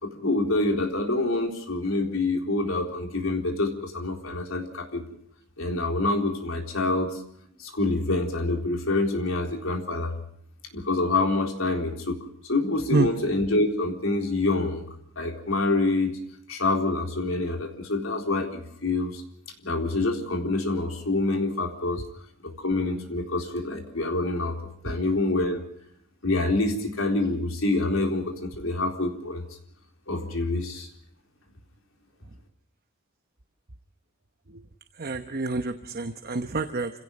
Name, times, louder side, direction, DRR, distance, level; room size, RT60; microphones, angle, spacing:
voice 1, 0.0-5.0 5.6-7.2 7.6-10.1 10.7-12.2 12.5-14.8 15.2-16.2 16.5-19.2 19.6-22.0 22.4-24.6 24.8-25.6 26.2-29.4 30.1-30.9, left 2 dB, 75° left, 3 dB, 4.1 m, -26 dB
voice 2, 35.0-36.9, right 3 dB, 45° right, 8 dB, 1.0 m, -27 dB
29.0 x 17.0 x 5.4 m, 0.69 s
head